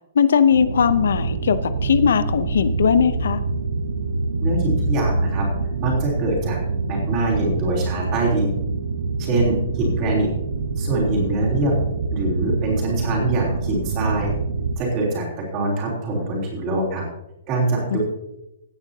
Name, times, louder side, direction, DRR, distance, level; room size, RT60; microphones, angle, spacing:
voice 1, 0.1-3.4 17.9-18.0, left 7 dB, 75° left, 13 dB, 0.7 m, -19 dB
sound 1, 0.5-14.8, right 3 dB, 70° right, 1.1 m, -25 dB
voice 2, 4.4-5.5 5.8-6.6 6.9-8.5 9.2-10.3 10.8-11.7 12.1-14.3 14.8-15.3 15.5-17.0 17.5-18.0, right 2 dB, 20° right, -3 dB, 3.4 m, -23 dB
17.0 x 9.2 x 2.8 m, 0.89 s
hypercardioid pair, 175°, 0 cm